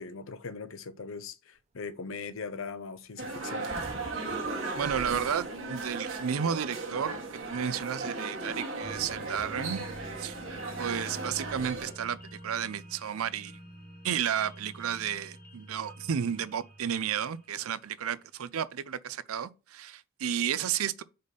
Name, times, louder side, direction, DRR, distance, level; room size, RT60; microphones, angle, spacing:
voice 1, 0.0-3.7, left 5 dB, 70° left, 0.7 m, -40 dB
sound 1, 1.6-1.9 2.3-2.5 2.7-2.9 3.2-6.2 6.5-8.1, right 2 dB, 30° right, 0.6 m, -50 dB
sound 2, 3.2-11.9, right 3 dB, 65° right, 1.5 m, -36 dB
voice 2, 4.8-7.2 7.5-9.8 10.2-10.4 10.8-12.2 12.4-13.6 14.0-21.0, right 8 dB, 90° right, 0.5 m, -32 dB
sound 3, 8.8-18.2 18.6-18.7, right 1 dB, 40° left, 1.8 m, -47 dB
5.2 x 4.1 x 5.2 m
head